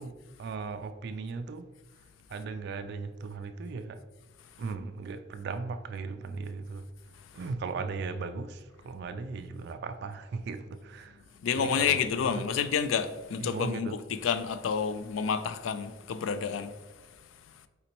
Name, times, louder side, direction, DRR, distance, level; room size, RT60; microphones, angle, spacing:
voice 1, 0.0-4.1 4.6-6.9 7.3-11.3 11.5-12.5 13.4-14.0, right 4 dB, 55° right, 0.3 m, -38 dB
voice 2, 11.4-16.7, left 6 dB, 75° left, 0.3 m, -29 dB
4.2 x 3.9 x 2.9 m
head